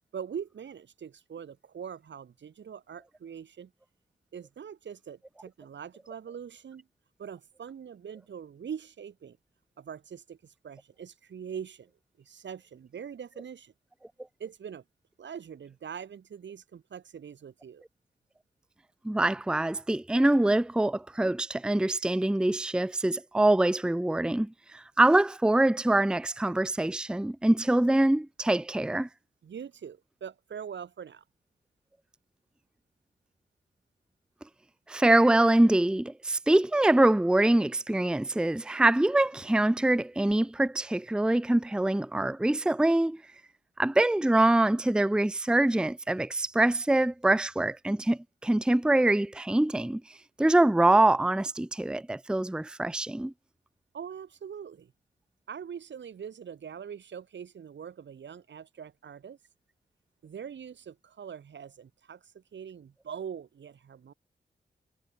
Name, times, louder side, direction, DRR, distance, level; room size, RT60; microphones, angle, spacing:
voice 1, 0.1-3.7 4.3-6.9 7.2-9.4 9.8-11.9 12.2-13.7 14.4-14.8 15.2-17.8 29.4-31.2 53.9-54.9 55.5-59.4 60.2-64.1, right 7 dB, 90° right, 4.4 m, -42 dB
voice 2, 19.0-29.1 34.9-43.2 43.8-50.0 50.4-53.3, right 1 dB, 5° right, 0.5 m, -24 dB
cardioid pair, 55°, 18 cm